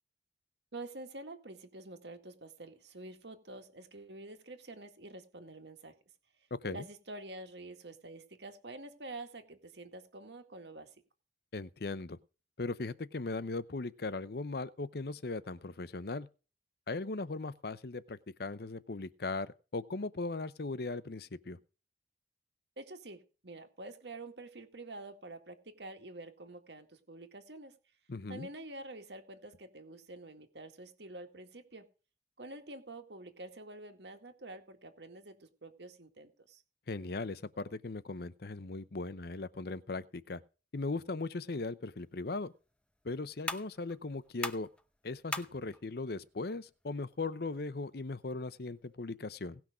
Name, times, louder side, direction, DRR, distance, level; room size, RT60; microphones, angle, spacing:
voice 1, 0.7-5.9 6.6-10.9 22.8-27.7 28.3-31.9 32.4-36.6, right 2 dB, 75° right, 2.0 m, -48 dB
voice 2, 11.5-12.2 12.6-16.3 16.9-21.6 28.1-28.5 36.9-40.4 40.7-42.5 43.0-44.7 45.0-49.6, left 3 dB, 60° left, 0.7 m, -38 dB
sound 1, 41.9-48.9, left 2 dB, 5° left, 0.7 m, -46 dB
18.0 x 6.1 x 5.0 m
head